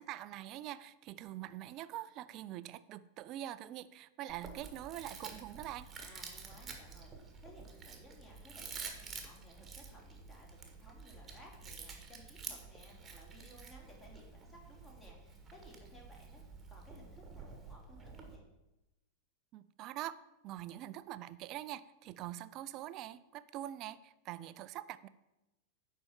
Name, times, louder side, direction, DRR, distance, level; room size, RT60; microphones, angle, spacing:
voice 1, 0.0-5.9 19.5-20.1 20.4-25.1, right 13 dB, 40° right, 15 dB, 0.4 m, -44 dB
Chewing mastication, 4.3-18.4, right 5 dB, 20° right, 1.6 m, -50 dB
voice 2, 6.0-18.4, equal, 15° left, -1 dB, 2.9 m, -59 dB
10.5 x 4.5 x 7.1 m, 0.96 s
figure-of-eight pair, 90°, 0 cm